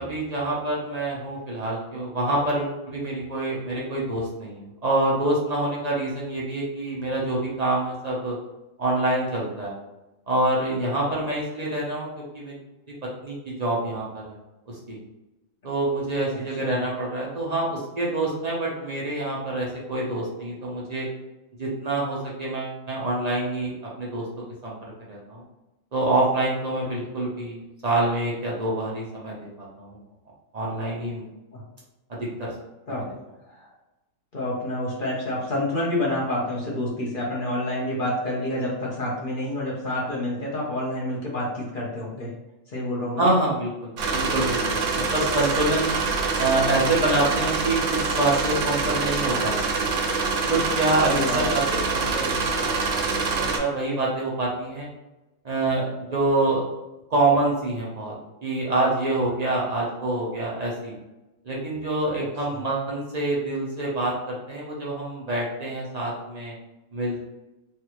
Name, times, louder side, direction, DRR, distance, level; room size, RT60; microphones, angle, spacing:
voice 1, 0.0-8.4 8.8-9.7 10.3-12.6 13.2-14.3 14.9-15.0 15.6-21.1 21.6-24.2 24.6-24.8 25.1-25.4 25.9-30.0 30.5-31.3 32.1-32.5 32.9-33.0 43.2-46.0 46.4-49.9 50.5-54.9 55.4-56.6 57.1-58.1 58.4-60.9 61.4-66.5 66.9-67.2, right 2 dB, 45° right, -5 dB, 0.6 m, -26 dB
voice 2, 16.3-16.8 26.8-27.0 31.5-31.6 32.9-33.1 33.5-33.7 34.3-42.3 42.7-43.4 51.1-51.4 62.2-62.3, left 1 dB, 45° left, -5 dB, 0.8 m, -28 dB
sound 1, 44.0-53.6, right 4 dB, 70° right, 0.9 m, -25 dB
3.2 x 2.4 x 2.9 m, 1.0 s
omnidirectional pair, 1.5 m